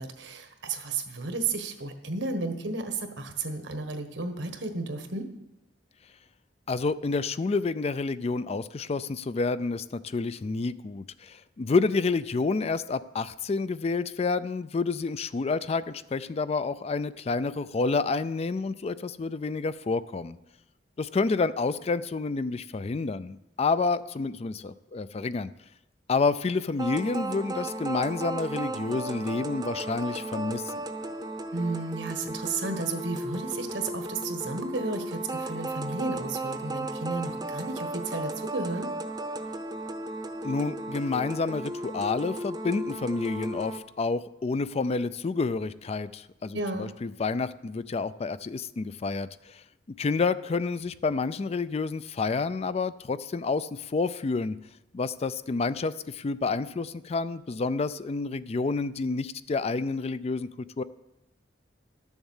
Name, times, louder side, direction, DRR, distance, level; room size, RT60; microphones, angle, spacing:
voice 1, 0.0-5.3 31.5-38.9 46.5-46.9, right 3 dB, 80° right, 7 dB, 1.4 m, -33 dB
voice 2, 6.7-20.4 21.0-25.5 26.1-30.8 40.4-49.6 50.0-54.6 54.9-60.5 60.8-60.9, left 4 dB, 35° left, 15 dB, 0.4 m, -29 dB
sound 1, 26.8-43.8, right 2 dB, 20° right, 0.7 m, -35 dB
12.0 x 7.2 x 7.2 m, 0.92 s
head